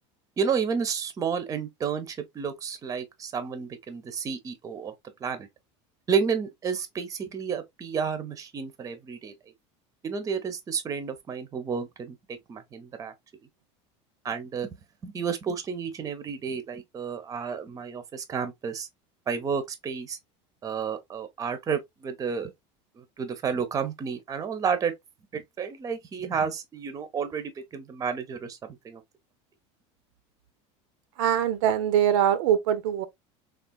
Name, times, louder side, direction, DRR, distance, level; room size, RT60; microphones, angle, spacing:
voice 1, 0.4-4.9 5.2-5.5 6.1-9.3 10.0-13.1 14.2-14.7 15.0-18.9 19.3-20.2 20.6-22.5 23.0-24.9 25.3-28.6 28.8-29.0, right 6 dB, 20° right, 0.6 m, -31 dB
voice 2, 31.2-33.1, right 10 dB, 80° right, 0.5 m, -23 dB
3.5 x 2.4 x 2.2 m
supercardioid pair, 135°, 15 cm